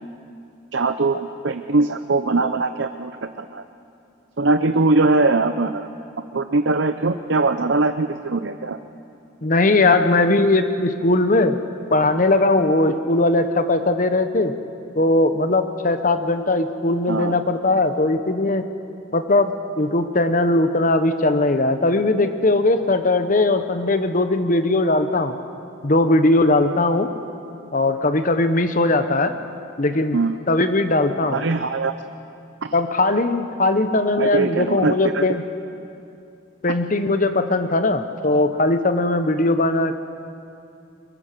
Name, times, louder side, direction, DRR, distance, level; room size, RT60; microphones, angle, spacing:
voice 1, 0.7-3.1 3.4-3.6 4.4-5.9 6.3-8.8 17.1-17.3 30.1-30.4 31.3-31.9 34.2-35.2, right 3 dB, 60° right, 9 dB, 0.7 m, -21 dB
voice 2, 9.4-11.6 11.9-14.5 15.0-18.6 19.1-25.4 25.8-27.1 27.7-29.3 29.8-30.2 30.5-31.4 32.7-35.4 36.6-40.0, left 2 dB, 40° left, 9 dB, 1.0 m, -19 dB
23.0 x 22.0 x 6.8 m, 2.6 s
head